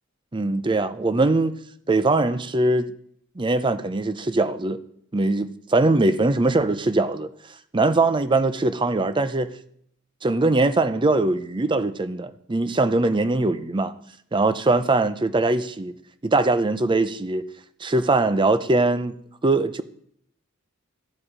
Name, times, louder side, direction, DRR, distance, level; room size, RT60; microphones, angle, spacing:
voice 1, 0.3-1.5 1.9-2.9 3.4-4.8 5.1-7.3 7.7-9.5 10.2-13.9 14.3-15.9 16.2-17.5 17.8-19.1 19.4-19.8, right 2 dB, 20° right, 0.6 m, -21 dB
12.5 x 7.6 x 4.9 m
head